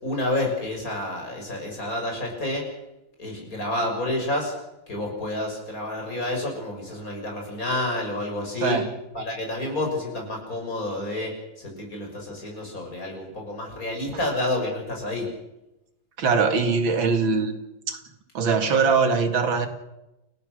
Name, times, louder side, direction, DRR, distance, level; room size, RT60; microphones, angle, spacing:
voice 1, 0.0-2.7 3.2-4.5 4.9-8.8 9.1-15.3, left 1 dB, 45° left, 1 dB, 7.0 m, -29 dB
voice 2, 16.2-17.5 17.9-18.0 18.3-19.7, right 5 dB, 90° right, 7 dB, 3.0 m, -22 dB
29.0 x 17.0 x 6.7 m, 0.93 s
omnidirectional pair, 2.1 m